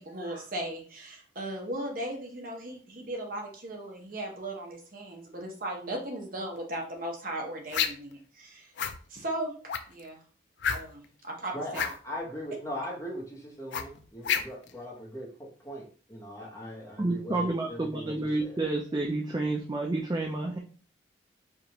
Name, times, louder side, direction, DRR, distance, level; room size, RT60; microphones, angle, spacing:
voice 1, 0.0-8.7 9.1-10.2 10.7-11.6, right 1 dB, 45° right, 1 dB, 0.9 m, -37 dB
sound 1, 7.7-8.1 8.8-9.0 9.7-10.0 10.6-11.1 11.7-12.0 13.7-14.7, left 7 dB, 70° left, 0.4 m, -29 dB
voice 2, 11.5-15.3 15.6-18.6, equal, 15° left, -3 dB, 1.0 m, -39 dB
voice 3, 17.0-20.6, right 2 dB, 20° right, 1 dB, 0.4 m, -30 dB
4.7 x 2.5 x 2.9 m, 0.41 s
head